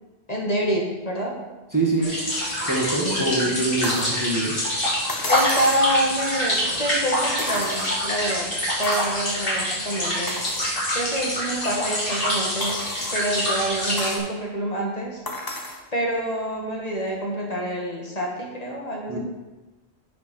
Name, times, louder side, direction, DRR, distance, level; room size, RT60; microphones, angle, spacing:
voice 1, 0.3-1.4 3.0-3.3 5.2-10.4 10.9-12.8 13.1-15.2 15.9-19.2, right 1 dB, 35° left, -1 dB, 1.8 m, -27 dB
voice 2, 1.7-2.2 2.6-4.6 19.1-19.2, right 2 dB, 15° right, -3 dB, 1.5 m, -24 dB
sound 1, 2.0-14.2, equal, 55° left, 3.4 m, -26 dB
sound 2, 3.8-4.2 5.1-5.9 7.4-8.2 8.8-9.2 9.7-9.8 10.3-10.8 11.4-11.5 12.6-13.2 14.0-14.3 15.3-15.8 17.1-17.2, left 2 dB, 20° left, 1.0 m, -34 dB
7.1 x 6.9 x 6.2 m, 1.1 s
omnidirectional pair, 1.1 m